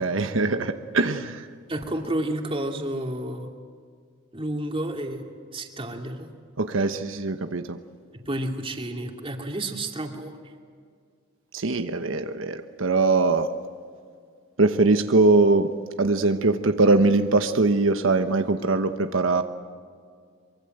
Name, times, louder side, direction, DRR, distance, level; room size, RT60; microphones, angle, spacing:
voice 1, 0.0-1.5 6.6-7.8 11.5-13.5 14.6-19.4, right 3 dB, 85° right, 8 dB, 1.1 m, -22 dB
voice 2, 1.7-3.5 4.3-5.2 5.5-6.3 8.1-10.4, right 1 dB, 30° right, 3 dB, 2.6 m, -30 dB
24.0 x 23.5 x 7.9 m, 2.1 s
head